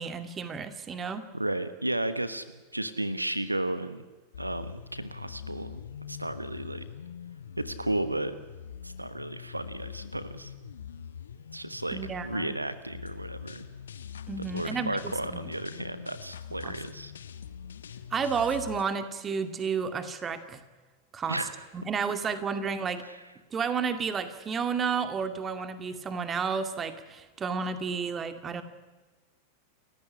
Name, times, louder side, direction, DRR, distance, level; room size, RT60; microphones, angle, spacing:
voice 1, 0.0-1.3 11.9-12.5 14.3-15.5 16.6-16.7 18.1-20.6 21.1-21.4 21.7-23.0 23.5-28.6, right 5 dB, 20° right, 9 dB, 2.3 m, -31 dB
voice 2, 1.3-2.4 2.7-4.0 4.4-5.8 6.1-6.8 7.6-8.4 8.8-10.5 11.5-13.7 14.5-17.1 21.3-21.6 23.0-23.3, right 1 dB, 85° right, 13 dB, 1.2 m, -33 dB
sound 1, 4.3-18.8, left 8 dB, 65° left, 1.3 m, -43 dB
29.5 x 15.0 x 9.9 m, 1.2 s
figure-of-eight pair, 90°, 0 cm